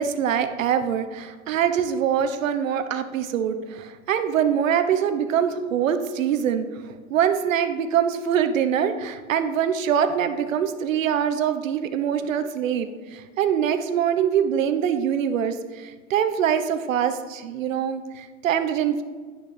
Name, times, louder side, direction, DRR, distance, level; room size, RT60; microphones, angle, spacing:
voice 1, 0.0-19.0, right 8 dB, 70° right, 9 dB, 1.1 m, -24 dB
11.0 x 9.7 x 3.4 m, 1.5 s
hypercardioid pair, 140°, 41 cm